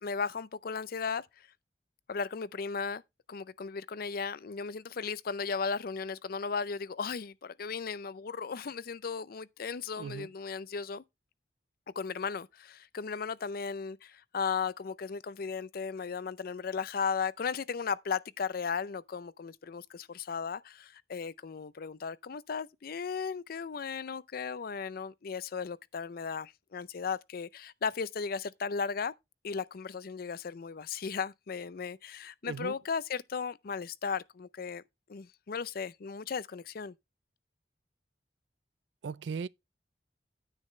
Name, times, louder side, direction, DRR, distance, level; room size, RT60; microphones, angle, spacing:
voice 1, 0.0-1.3 2.1-3.0 3.3-11.0 12.0-29.1 29.4-34.8 35.1-36.9, left 5 dB, 55° left, 0.5 m, -36 dB
voice 2, 10.0-10.3 32.4-32.7 39.0-39.5, right 5 dB, 90° right, 0.4 m, -37 dB
9.8 x 8.5 x 3.1 m
head